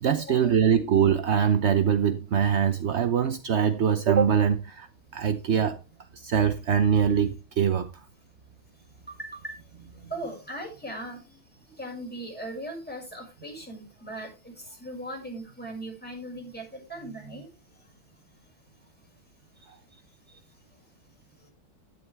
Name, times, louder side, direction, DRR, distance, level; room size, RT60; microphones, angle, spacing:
voice 1, 0.0-4.9 5.1-5.8 6.1-7.9, right 8 dB, 65° right, 0.6 m, -23 dB
voice 2, 9.1-9.5 9.9-11.2 11.8-14.5 14.8-17.5, right 1 dB, 5° left, 6.2 m, -38 dB
11.0 x 11.0 x 3.4 m
omnidirectional pair, 2.1 m